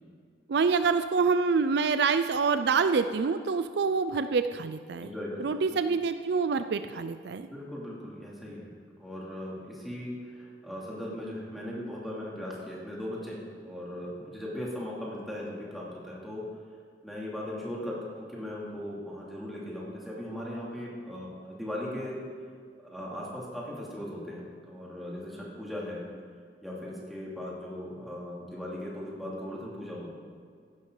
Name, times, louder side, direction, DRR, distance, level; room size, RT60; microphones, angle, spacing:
voice 1, 0.5-5.1 5.4-7.5, right 5 dB, 60° right, 10 dB, 0.4 m, -26 dB
voice 2, 5.0-5.4 5.7-5.8 7.5-8.7 9.0-16.4 17.0-22.2 22.8-26.1 26.6-30.1, left 1 dB, ahead, -6 dB, 2.8 m, -38 dB
15.0 x 11.5 x 4.0 m, 2.2 s
head